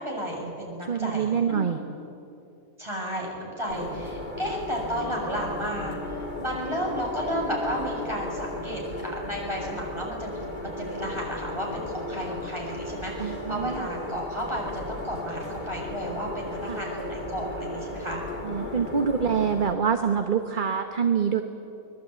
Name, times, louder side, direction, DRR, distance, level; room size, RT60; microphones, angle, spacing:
voice 1, 0.0-1.7 2.8-18.2 18.5-18.9, equal, 20° right, -2 dB, 7.5 m, -33 dB
voice 2, 0.9-1.8 13.2-13.9 16.7-16.8 18.4-21.4, right 7 dB, 40° right, 6 dB, 1.2 m, -25 dB
sound 1, 3.7-19.8, left 2 dB, 35° left, 2.3 m, -36 dB
24.5 x 22.0 x 9.4 m, 2.7 s
omnidirectional pair, 1.4 m